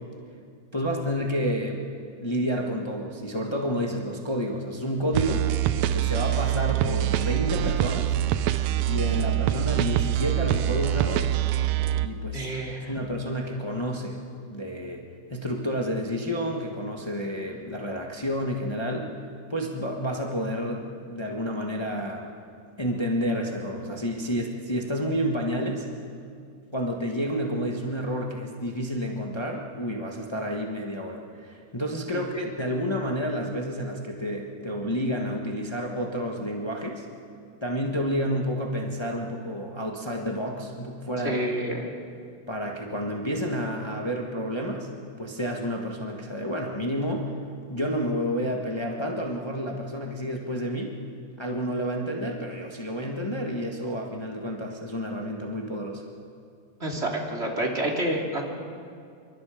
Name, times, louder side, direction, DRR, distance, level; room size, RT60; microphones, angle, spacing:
voice 1, 0.7-1.8 2.2-5.5 5.9-8.2 8.8-11.3 12.0-12.5 12.9-14.2 14.5-15.0 15.3-19.1 19.5-22.3 22.8-25.9 26.7-37.1 37.6-41.4 42.5-44.9 45.2-47.3 47.7-51.0 51.4-56.0, equal, 40° left, 0 dB, 0.4 m, -30 dB
sound 1, 5.1-12.1, right 12 dB, 75° right, 1.7 m, -25 dB
voice 2, 12.3-12.9 41.2-42.0 56.8-58.4, right 1 dB, 20° right, 0 dB, 2.6 m, -28 dB
28.0 x 24.0 x 5.1 m, 2.3 s
omnidirectional pair, 3.6 m